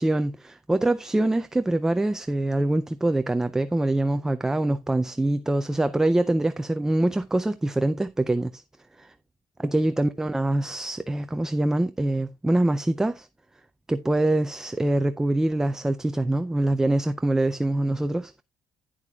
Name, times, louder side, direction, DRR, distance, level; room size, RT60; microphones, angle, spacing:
voice 1, 0.0-8.6 9.0-9.1 9.6-13.3 13.9-18.4, right 1 dB, 5° right, 0.4 m, -24 dB
11.0 x 10.0 x 2.3 m
cardioid pair, 160°, 8 cm